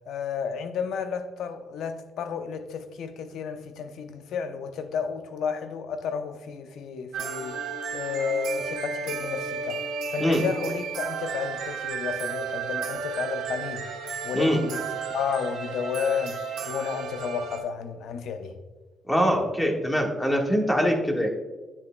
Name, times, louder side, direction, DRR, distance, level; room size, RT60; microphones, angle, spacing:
voice 1, 0.1-7.6 7.9-13.9 14.2-14.8 15.1-18.6, left 6 dB, 80° left, 0.7 m, -32 dB
sound 1, 7.1-17.6, right 5 dB, 90° right, 1.2 m, -33 dB
voice 2, 19.1-21.3, equal, 10° left, 1.5 m, -23 dB
9.6 x 7.3 x 2.2 m
cardioid pair, 90°, 0 cm